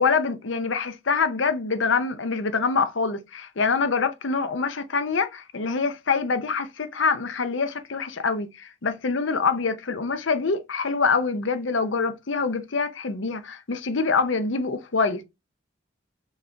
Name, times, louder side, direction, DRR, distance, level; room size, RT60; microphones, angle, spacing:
voice 1, 0.0-15.2, left 4 dB, 70° left, 0.7 m, -25 dB
4.2 x 3.8 x 3.4 m
head